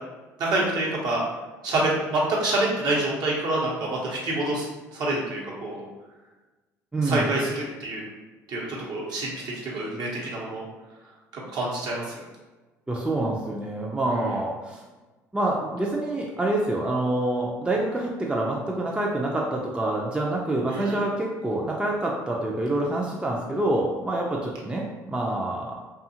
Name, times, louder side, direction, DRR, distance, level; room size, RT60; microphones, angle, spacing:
voice 1, 0.4-1.2 1.6-4.7 4.9-5.8 7.0-8.0 8.5-10.6 11.3-12.0 14.1-14.3 20.7-21.0, right 2 dB, 55° right, -4 dB, 1.0 m, -27 dB
voice 2, 6.9-7.4 12.9-14.8 15.3-25.8, right 1 dB, 10° right, -2 dB, 0.5 m, -27 dB
2.6 x 2.4 x 2.8 m, 1.2 s
hypercardioid pair, 65°, 8 cm